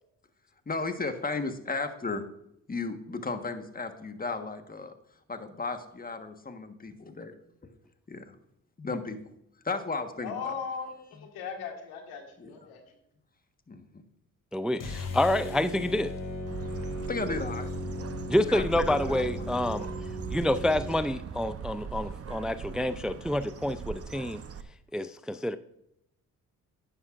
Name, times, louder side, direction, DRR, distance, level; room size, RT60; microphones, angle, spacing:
voice 1, 0.7-2.2 2.7-4.9 5.3-7.3 8.1-8.3 8.8-9.2 9.6-10.6 12.4-12.5 13.7-14.0 17.1-17.7 18.5-19.6, left 3 dB, 25° left, 7 dB, 1.4 m, -35 dB
voice 2, 10.2-12.8, left 6 dB, 90° left, 3 dB, 1.8 m, -38 dB
voice 3, 14.5-16.1 18.3-19.9 20.3-24.4 24.9-25.6, left 1 dB, ahead, 13 dB, 0.4 m, -28 dB
sound 1, 14.8-21.0, left 1 dB, 60° left, 2.5 m, -36 dB
Bird, 16.5-24.6, right 6 dB, 40° right, 0.8 m, -40 dB
11.0 x 9.8 x 2.5 m, 0.77 s
supercardioid pair, 60°, 37 cm